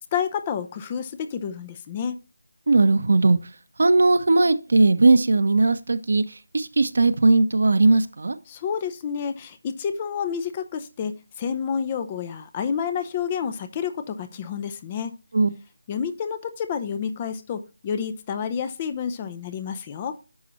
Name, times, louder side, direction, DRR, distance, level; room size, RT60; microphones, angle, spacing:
voice 1, 0.1-2.2 8.5-15.1 15.9-20.2, left 7 dB, 20° left, 0.7 m, -29 dB
voice 2, 2.7-3.4 3.8-6.2 6.5-8.4 15.3-15.5, right 3 dB, 60° right, 1.0 m, -18 dB
10.5 x 6.0 x 3.1 m
figure-of-eight pair, 165°, 0 cm